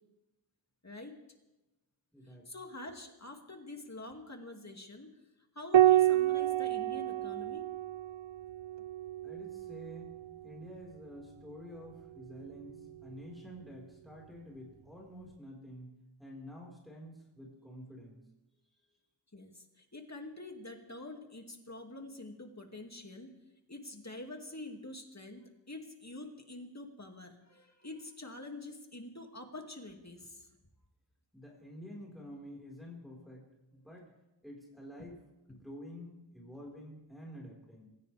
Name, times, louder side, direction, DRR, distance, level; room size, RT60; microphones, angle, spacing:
voice 1, 0.8-1.1 2.5-5.1 5.6-7.7 19.3-23.4 23.7-30.5 35.0-35.1, left 2 dB, 35° left, 3 dB, 2.4 m, -46 dB
voice 2, 2.1-2.4 9.2-10.2 10.4-15.9 16.2-18.2 31.3-34.1 34.4-37.9, equal, ahead, -3 dB, 4.7 m, -49 dB
Piano, 5.7-10.6 12.2-13.0, right 13 dB, 70° right, 0.6 m, -29 dB
26.5 x 16.0 x 3.5 m, 0.99 s
wide cardioid pair, 60°, 47 cm